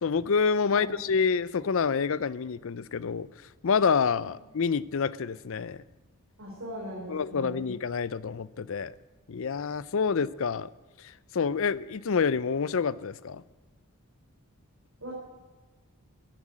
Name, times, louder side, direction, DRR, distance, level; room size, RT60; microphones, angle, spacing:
voice 1, 0.0-3.3 3.6-5.8 7.1-8.9 9.3-10.7 11.3-13.4, left 5 dB, 65° left, 0.5 m, -27 dB
voice 2, 6.4-7.7 15.0-15.1, equal, 65° right, 4.1 m, -40 dB
13.5 x 10.5 x 8.6 m
head